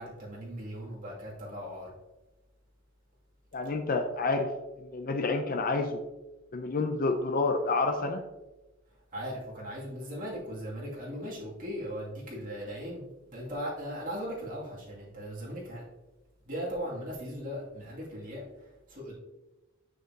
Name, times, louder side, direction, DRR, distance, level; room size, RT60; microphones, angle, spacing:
voice 1, 0.0-1.9 9.1-15.8 16.5-18.4 18.9-19.1, equal, 40° right, -5 dB, 2.5 m, -38 dB
voice 2, 3.5-4.5 4.7-6.0 6.5-8.2, left 3 dB, 45° left, 5 dB, 0.6 m, -29 dB
7.4 x 6.4 x 2.8 m, 1.1 s
head